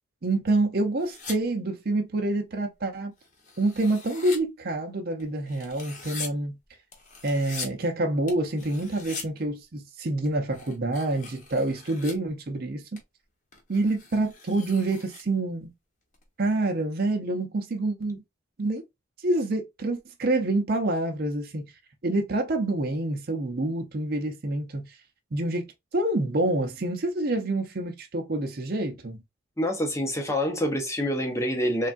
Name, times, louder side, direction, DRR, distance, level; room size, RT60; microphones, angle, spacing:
voice 1, 0.2-3.1 3.6-6.6 7.2-13.0 13.7-15.7 16.4-18.2 18.6-18.8 19.2-21.7 22.0-24.9 25.3-25.6 25.9-29.2, right 2 dB, 45° right, 0.6 m, -27 dB
sound 1, 1.0-1.4 3.2-4.4 5.2-6.3 6.9-7.7 8.3-9.2 10.2-12.1 13.0-13.1 13.5-15.2 16.1-16.7, left 4 dB, 35° left, 0.9 m, -41 dB
voice 2, 29.6-31.9, equal, 15° left, 0.7 m, -26 dB
3.4 x 2.3 x 2.5 m
head